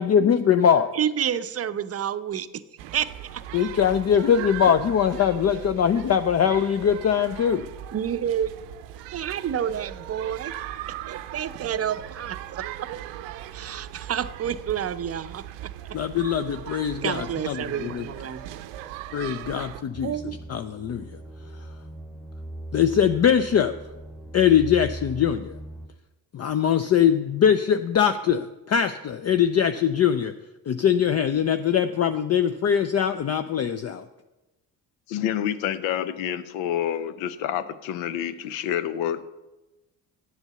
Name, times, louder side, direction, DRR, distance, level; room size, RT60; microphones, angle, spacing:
voice 1, 0.0-0.9 3.5-7.6 15.9-18.0 19.1-20.1 20.5-21.2 22.7-23.7 24.3-25.6 26.3-30.3 30.7-34.0, left 8 dB, 35° left, 0.5 m, -22 dB
voice 2, 0.9-2.6 2.9-3.4 7.9-8.5 9.1-10.5 11.1-12.9 13.5-15.7 17.0-18.6 20.0-20.4, right 9 dB, 30° right, 0.6 m, -29 dB
sound 1, 2.8-19.8, right 12 dB, 70° right, 0.7 m, -39 dB
sound 2, 19.9-25.9, right 1 dB, ahead, 1.2 m, -39 dB
voice 3, 35.1-39.2, left 10 dB, 70° left, 0.8 m, -28 dB
8.0 x 8.0 x 6.9 m
hypercardioid pair, 50°, 47 cm